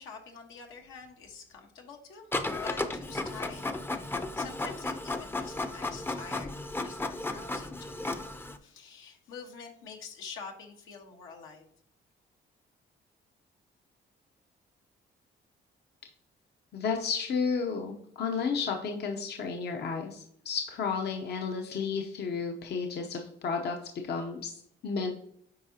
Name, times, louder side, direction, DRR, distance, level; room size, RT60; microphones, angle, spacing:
voice 1, 0.0-3.6 4.3-11.7, left 5 dB, 85° left, 2 dB, 1.4 m, -46 dB
Printer, 2.3-8.6, left 2 dB, 10° left, 0.6 m, -34 dB
voice 2, 16.7-23.8 24.0-25.1, left 5 dB, 55° left, 3 dB, 0.8 m, -32 dB
8.6 x 4.7 x 2.8 m, 0.67 s
cardioid pair, 90°, 20 cm